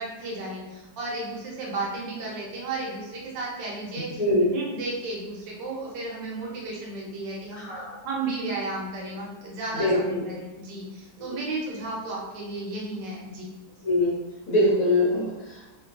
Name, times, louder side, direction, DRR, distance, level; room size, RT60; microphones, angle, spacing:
voice 1, 0.0-7.7 8.0-13.5, right 2 dB, 85° right, -3 dB, 1.4 m, -33 dB
voice 2, 7.5-8.0 9.7-10.2 13.8-14.1 14.5-15.7, left 1 dB, 55° left, -7 dB, 1.1 m, -23 dB
3.3 x 2.2 x 2.4 m, 1.0 s
omnidirectional pair, 1.9 m